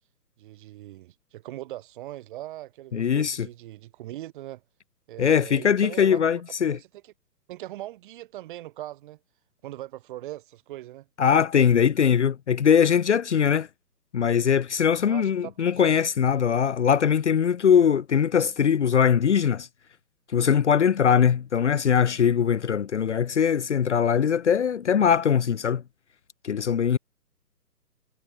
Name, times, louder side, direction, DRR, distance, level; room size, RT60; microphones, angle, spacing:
voice 1, 0.4-4.6 5.1-6.2 6.6-7.1 7.5-9.2 9.6-11.1 15.1-15.5, right 15 dB, 30° right, 7.6 m, -40 dB
voice 2, 2.9-3.5 5.2-6.8 11.2-13.7 14.1-19.7 20.3-25.8 26.4-27.0, left 7 dB, 45° left, 1.6 m, -21 dB
figure-of-eight pair, 135°, 48 cm